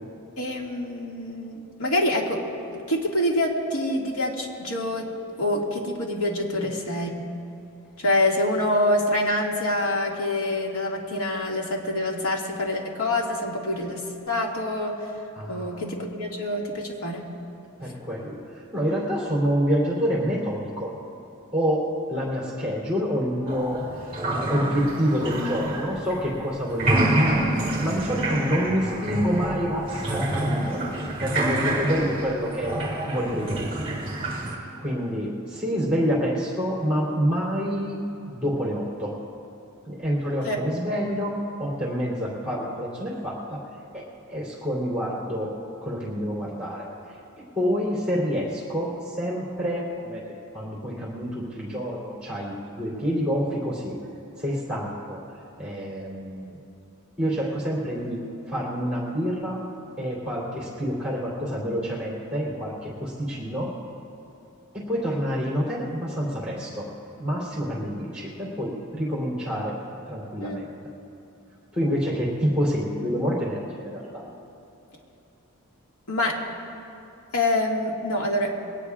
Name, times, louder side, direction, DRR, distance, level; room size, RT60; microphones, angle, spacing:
voice 1, 0.4-2.4 2.9-5.1 5.4-7.2 8.0-15.0 15.5-17.3 31.7-31.8 40.4-40.6 70.4-70.6 76.1-76.4 77.3-78.5, left 1 dB, 90° left, -1 dB, 2.1 m, -26 dB
voice 2, 15.4-15.8 17.8-20.9 21.5-21.8 22.1-23.8 24.1-27.4 27.8-30.8 31.2-32.7 33.1-33.7 34.8-38.0 38.3-39.1 39.9-43.6 43.9-44.0 44.3-45.5 45.8-46.9 47.6-50.2 50.5-53.9 54.4-55.2 55.6-56.5 57.2-59.6 60.0-63.7 64.7-66.9 67.2-69.8 70.1-70.7 71.7-74.2, equal, 5° right, -6 dB, 3.3 m, -27 dB
sound 1, 23.5-26.4 26.7-34.6, right 1 dB, 25° right, 2.8 m, -27 dB
22.5 x 18.0 x 2.5 m, 2.7 s
head